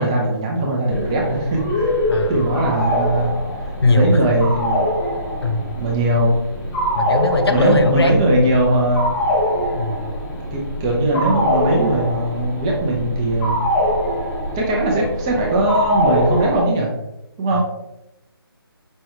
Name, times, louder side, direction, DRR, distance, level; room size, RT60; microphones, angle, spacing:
voice 1, 0.0-1.9 2.3-3.3 3.9-4.9 5.8-6.4 7.5-9.2 10.5-13.6 14.5-16.9 17.4-17.6, right 1 dB, 10° right, -2 dB, 0.4 m, -19 dB
sound 1, 0.9-16.6, equal, 15° left, 0.9 m, -24 dB
voice 2, 2.1-2.4 3.8-4.2 5.4-5.6 6.9-8.6 9.7-10.0 17.5-17.6, left 2 dB, 90° left, 6 dB, 0.6 m, -19 dB
5.3 x 2.3 x 2.9 m, 0.87 s
figure-of-eight pair, 160°, 13 cm